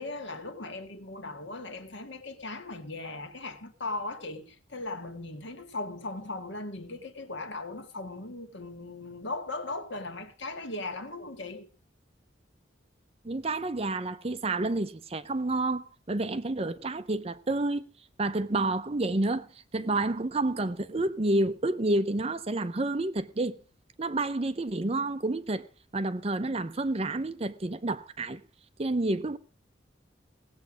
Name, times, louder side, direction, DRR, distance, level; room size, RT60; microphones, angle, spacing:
voice 1, 0.0-11.7, left 2 dB, 70° left, 1.9 m, -38 dB
voice 2, 13.2-17.9 18.2-19.5 19.7-23.6 24.0-25.7 25.9-28.4 28.8-29.4, right 2 dB, 30° right, 0.6 m, -29 dB
17.5 x 8.0 x 6.2 m
head